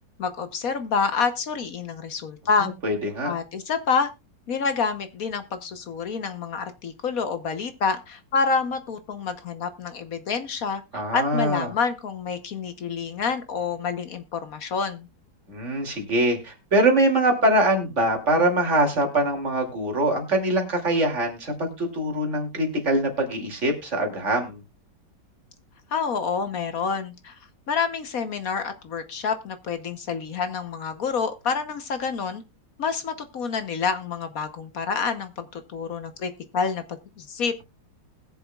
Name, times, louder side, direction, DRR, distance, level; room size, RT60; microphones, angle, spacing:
voice 1, 0.2-2.7 3.2-4.1 4.5-10.8 11.1-15.1 25.9-27.4 27.7-32.4 32.8-37.5, left 5 dB, 55° left, 10 dB, 1.2 m, -28 dB
voice 2, 2.8-3.3 10.9-11.7 15.5-24.6, right 1 dB, 35° right, 3 dB, 2.8 m, -23 dB
21.0 x 7.1 x 2.3 m, 0.25 s
omnidirectional pair, 2.1 m